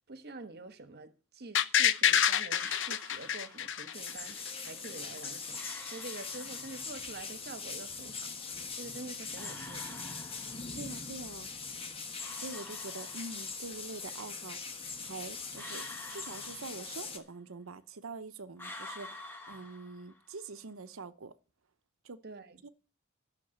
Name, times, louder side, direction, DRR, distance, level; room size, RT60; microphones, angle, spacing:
voice 1, 0.1-8.3 8.8-10.0 19.5-19.6 22.2-22.6, right 3 dB, 50° right, 1.3 m, -47 dB
sound 1, 1.5-4.5 4.8-4.9, left 9 dB, 60° left, 0.7 m, -27 dB
sound 2, 2.5-4.0 5.5-7.0 9.4-10.9 12.2-13.7 15.6-17.3 18.6-20.4, left 2 dB, 10° left, 1.8 m, -49 dB
sound 3, 3.9-17.2, left 4 dB, 25° left, 1.4 m, -41 dB
voice 2, 10.8-11.5 12.4-14.6 15.0-15.8 16.1-21.3 22.0-22.2 22.6-22.7, right 3 dB, 75° right, 0.8 m, -45 dB
12.0 x 6.7 x 7.7 m
head